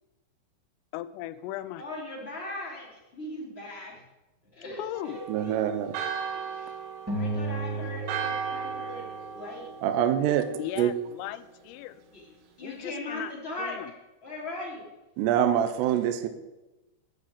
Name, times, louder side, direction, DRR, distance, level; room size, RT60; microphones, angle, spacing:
voice 1, 0.9-1.9 2.2-2.3 4.7-5.2 10.6-12.0 12.6-13.3 13.6-13.9, left 14 dB, 85° left, 14 dB, 3.1 m, -37 dB
voice 2, 1.8-3.9 4.5-5.6 6.3-6.7 7.1-9.7 12.1-12.2 12.6-13.8 14.2-14.9, left 1 dB, 15° left, -4 dB, 2.4 m, -39 dB
Church bell, 4.9-10.7, right 7 dB, 70° right, 2.7 m, -37 dB
voice 3, 5.3-6.0 9.8-10.4 10.8-10.9 15.2-16.3, right 10 dB, 90° right, 9 dB, 2.4 m, -25 dB
sound 1, 7.1-9.7, right 2 dB, 10° right, 0.9 m, -34 dB
10.5 x 6.4 x 8.9 m, 1.0 s
omnidirectional pair, 5.9 m